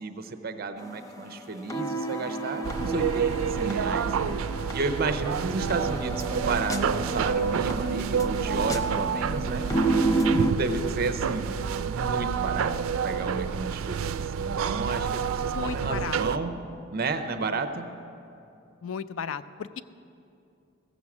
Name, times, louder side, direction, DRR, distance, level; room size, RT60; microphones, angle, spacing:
voice 1, 0.0-4.1 4.7-9.7 10.3-11.5 11.8-12.7 13.0-16.5 16.9-17.8, right 3 dB, 50° right, 8 dB, 0.7 m, -32 dB
sound 1, 0.8-10.5, right 2 dB, 15° left, 0.6 m, -31 dB
sound 2, 2.6-16.4, right 7 dB, 85° right, 0.4 m, -29 dB
voice 2, 15.5-16.2 18.8-19.8, left 7 dB, 75° left, 14 dB, 0.4 m, -34 dB
15.5 x 6.3 x 7.2 m, 2.6 s
head